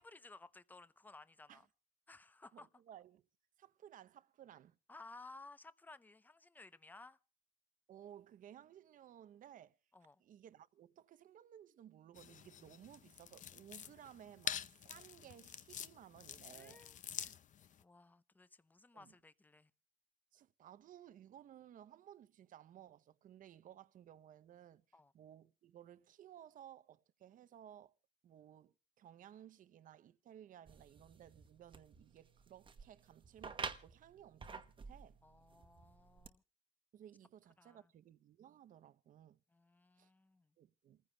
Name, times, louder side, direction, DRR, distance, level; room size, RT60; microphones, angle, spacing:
voice 1, 0.0-1.6 2.1-2.7 4.9-7.2 9.9-10.2 16.5-17.3 17.8-19.7 24.9-25.1 35.2-36.4 37.6-37.9 39.5-40.5, left 3 dB, 10° left, 0.6 m, -58 dB
voice 2, 2.5-3.2 3.6-4.8 7.9-9.8 10.2-16.9 18.9-19.2 20.3-27.9 28.2-35.2 36.9-39.4 40.0-40.1 40.6-41.0, right 10 dB, 50° right, 0.7 m, -58 dB
sound 1, 12.2-17.8, left 9 dB, 50° left, 0.7 m, -47 dB
sound 2, 30.7-36.3, right 5 dB, 30° right, 1.0 m, -50 dB
28.5 x 15.0 x 2.2 m
cardioid pair, 110°, 17 cm